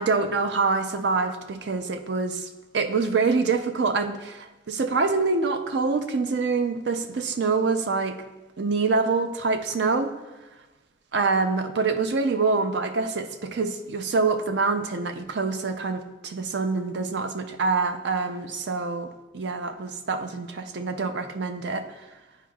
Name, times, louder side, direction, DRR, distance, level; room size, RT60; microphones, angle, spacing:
voice 1, 0.0-2.5 2.7-8.2 8.6-10.1 11.1-21.8, right 4 dB, 65° right, 8 dB, 0.4 m, -25 dB
10.0 x 4.6 x 2.3 m, 1.1 s
head